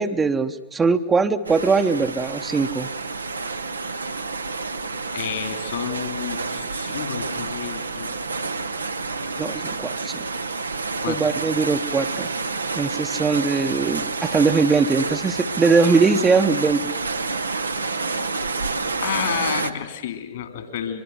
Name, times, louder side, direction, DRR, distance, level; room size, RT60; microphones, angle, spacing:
voice 1, 0.0-2.9 9.4-10.2 11.1-12.3 12.7-16.8, right 4 dB, 15° right, 7 dB, 0.9 m, -21 dB
sound 1, 1.5-19.7, right 3 dB, 80° right, 0.9 m, -29 dB
voice 2, 5.1-8.1 11.0-11.3 19.0-21.0, left 9 dB, 60° left, 8 dB, 3.2 m, -30 dB
24.0 x 22.0 x 7.9 m, 0.97 s
figure-of-eight pair, 90°, 0 cm